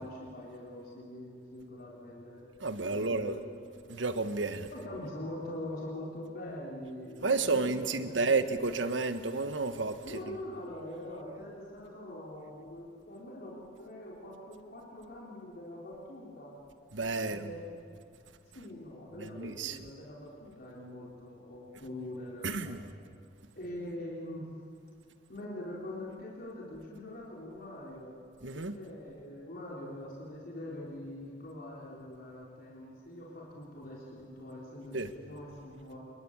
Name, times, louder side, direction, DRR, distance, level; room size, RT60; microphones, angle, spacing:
voice 1, 0.0-2.5 2.9-3.4 4.7-8.4 10.0-16.5 17.2-17.7 18.5-22.7 23.5-24.5 25.3-28.1 28.5-36.0, left 1 dB, 55° left, -4 dB, 3.8 m, -43 dB
voice 2, 2.6-3.4 3.9-4.7 7.2-10.4 16.9-17.5 19.2-19.8 22.4-22.8 28.4-28.7 34.9-35.1, right 3 dB, 75° right, 10 dB, 1.5 m, -31 dB
26.5 x 21.5 x 8.9 m, 2.3 s
head